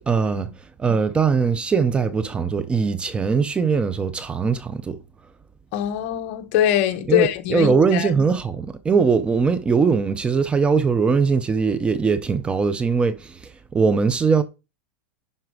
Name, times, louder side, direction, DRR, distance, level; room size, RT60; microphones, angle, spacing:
voice 1, 0.1-0.5 0.8-5.0 7.1-14.4, right 5 dB, 15° right, 0.6 m, -21 dB
voice 2, 5.7-8.1, left 12 dB, 50° left, 1.2 m, -22 dB
11.0 x 4.4 x 4.8 m
supercardioid pair, 145°, 8 cm